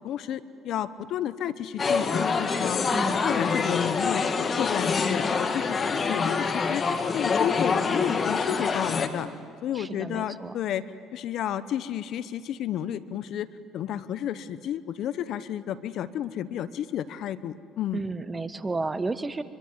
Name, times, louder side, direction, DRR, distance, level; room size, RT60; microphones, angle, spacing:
voice 1, 0.0-4.2 4.5-6.8 7.1-9.3 9.6-10.8 11.1-18.0, left 10 dB, 65° left, 15 dB, 1.0 m, -32 dB
sound 1, 1.8-9.1, left 5 dB, 40° left, 2.1 m, -26 dB
voice 2, 2.9-3.3 9.7-10.5 17.9-19.4, right 3 dB, 25° right, 13 dB, 1.3 m, -32 dB
24.5 x 23.5 x 9.3 m, 2.2 s
supercardioid pair, 70°, 0 cm